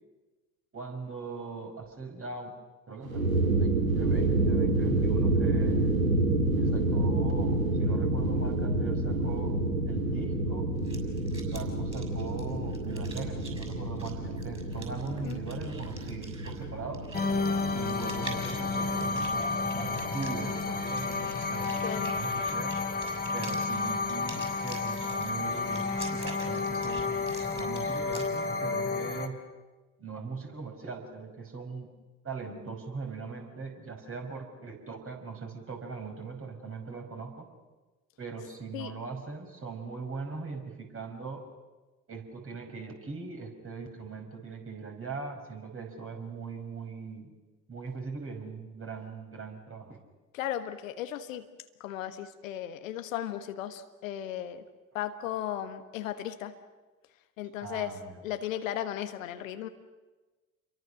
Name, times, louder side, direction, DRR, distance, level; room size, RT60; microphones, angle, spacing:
voice 1, 0.7-2.5 2.9-5.9 6.6-9.6 9.9-10.7 11.3-17.0 17.7-22.8 23.3-29.4 30.0-31.9 32.2-37.5 38.2-41.4 42.1-47.3 47.7-50.0 57.6-58.2, right 4 dB, 30° right, 2 dB, 5.9 m, -40 dB
sound 1, 3.0-21.8, right 2 dB, 85° right, 2.0 m, -29 dB
frotando piedras, 10.7-28.2, right 3 dB, 15° right, 6.6 m, -48 dB
sound 2, 17.1-29.3, left 4 dB, 20° left, 2.6 m, -31 dB
voice 2, 21.8-22.2 38.7-38.9 50.3-51.5 51.8-54.6 54.9-56.5 57.4-58.0 58.2-59.7, left 11 dB, 70° left, 9 dB, 1.4 m, -36 dB
29.0 x 23.0 x 6.5 m, 1.2 s
figure-of-eight pair, 55°, 41 cm